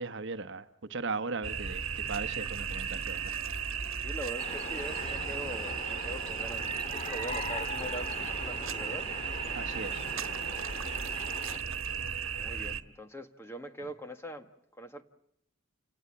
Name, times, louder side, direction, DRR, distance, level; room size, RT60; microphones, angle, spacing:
voice 1, 0.0-3.3 9.5-10.7, right 4 dB, 60° right, 1.0 m, -38 dB
sound 1, 1.4-12.8, right 7 dB, 85° right, 1.3 m, -35 dB
voice 2, 4.0-9.0 12.4-14.5 14.8-15.0, right 1 dB, 10° left, 1.5 m, -42 dB
sound 2, 4.4-11.6, left 2 dB, 30° left, 2.2 m, -41 dB
29.5 x 18.0 x 8.8 m
head